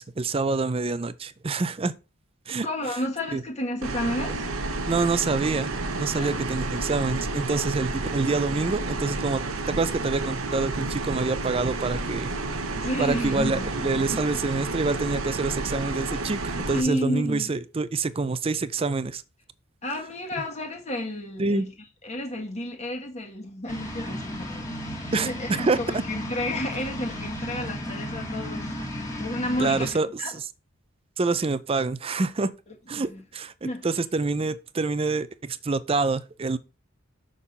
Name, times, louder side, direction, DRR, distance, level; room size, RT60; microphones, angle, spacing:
voice 1, 0.0-1.9 2.5-2.7 3.3-3.4 4.9-12.3 13.0-19.2 21.4-21.7 25.1-26.0 29.6-30.5 31.2-32.5 32.9-36.6, right 3 dB, 25° right, 0.4 m, -27 dB
voice 2, 2.6-4.5 6.1-6.5 12.8-14.2 16.7-17.5 19.8-21.7 22.0-28.8 29.2-30.3 32.7-33.2 33.6-33.9, left 1 dB, 30° left, 1.6 m, -32 dB
sound 1, 3.8-16.8, right 3 dB, 80° right, 0.9 m, -30 dB
sound 2, 23.7-29.9, equal, 15° left, 1.7 m, -34 dB
6.4 x 3.7 x 5.3 m
head